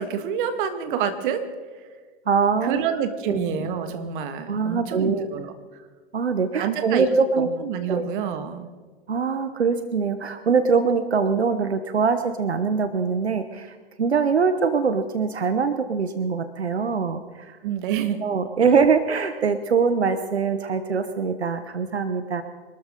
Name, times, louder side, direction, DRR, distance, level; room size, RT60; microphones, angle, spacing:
voice 1, 0.0-1.5 2.6-5.5 6.6-7.1 7.4-8.7 17.6-18.3, right 8 dB, 50° right, 8 dB, 1.9 m, -27 dB
voice 2, 2.3-2.8 3.3-3.6 4.5-5.3 6.1-7.5 7.9-8.0 9.1-17.6 18.2-22.4, right 5 dB, 90° right, 10 dB, 1.0 m, -23 dB
25.5 x 13.0 x 3.8 m, 1.4 s
hypercardioid pair, 105°, 31 cm